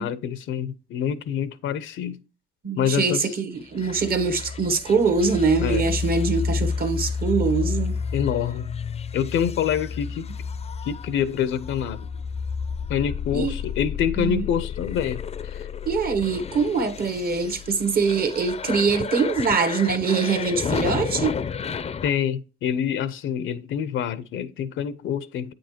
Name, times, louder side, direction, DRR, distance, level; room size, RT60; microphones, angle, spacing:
voice 1, 0.0-2.2 2.8-3.3 5.6-5.9 8.1-8.7 9.1-10.3 10.8-12.1 12.9-15.7 22.0-25.5, left 8 dB, 80° left, 0.6 m, -26 dB
voice 2, 2.6-8.0 13.3-13.5 14.2-14.4 15.9-21.4, right 4 dB, 50° right, 1.0 m, -23 dB
sound 1, 3.8-22.1, left 6 dB, 30° left, 0.4 m, -31 dB
8.6 x 5.2 x 2.9 m
cardioid pair, 90°, 20 cm